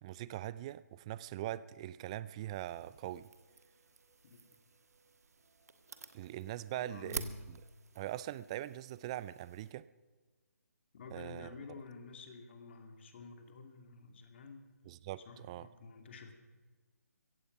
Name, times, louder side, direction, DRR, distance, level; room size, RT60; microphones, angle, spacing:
voice 1, 0.0-3.3 6.1-7.6 8.0-9.9 11.1-11.5 14.8-15.7, right 14 dB, 20° right, 18 dB, 0.4 m, -42 dB
sound 1, 2.5-9.7, right 4 dB, 70° right, 1.4 m, -50 dB
voice 2, 6.7-7.4 10.9-14.7 15.3-16.3, left 4 dB, 45° left, 5 dB, 2.4 m, -50 dB
16.0 x 15.5 x 5.4 m, 1.3 s
figure-of-eight pair, 145°, 9 cm